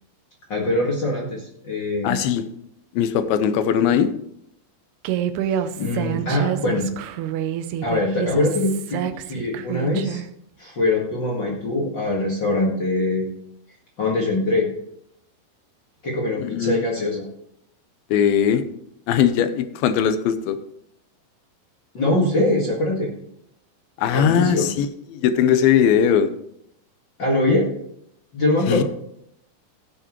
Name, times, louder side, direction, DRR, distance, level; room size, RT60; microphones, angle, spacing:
voice 1, 0.5-2.2 5.5-6.9 7.8-10.2 10.6-13.3 14.0-14.7 16.0-17.3 21.9-23.1 24.1-24.7 27.2-27.7 28.3-28.8, left 2 dB, 40° left, -2 dB, 1.8 m, -23 dB
voice 2, 2.0-2.4 2.9-4.1 16.4-16.8 18.1-18.6 19.1-20.6 24.0-26.3 28.7-28.8, left 8 dB, 75° left, 11 dB, 2.5 m, -19 dB
Human voice, 5.0-10.3, right 10 dB, 85° right, 2.8 m, -27 dB
16.5 x 7.4 x 3.1 m, 0.72 s
omnidirectional pair, 4.6 m